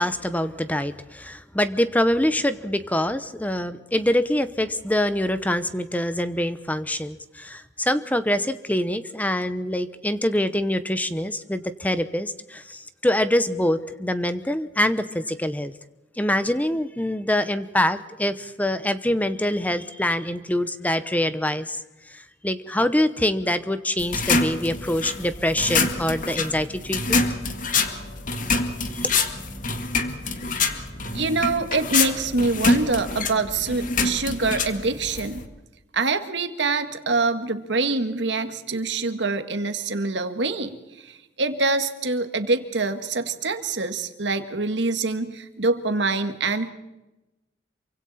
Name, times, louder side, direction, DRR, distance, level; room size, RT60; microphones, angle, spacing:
voice 1, 0.0-15.7 16.2-27.2 29.0-29.1, left 1 dB, 10° left, 11 dB, 0.8 m, -25 dB
sound 1, 24.0-35.5, left 3 dB, 45° left, 1.9 m, -26 dB
voice 2, 31.1-35.4 35.9-46.7, right 3 dB, 70° right, 8 dB, 1.7 m, -25 dB
27.5 x 24.5 x 4.2 m, 1.0 s
head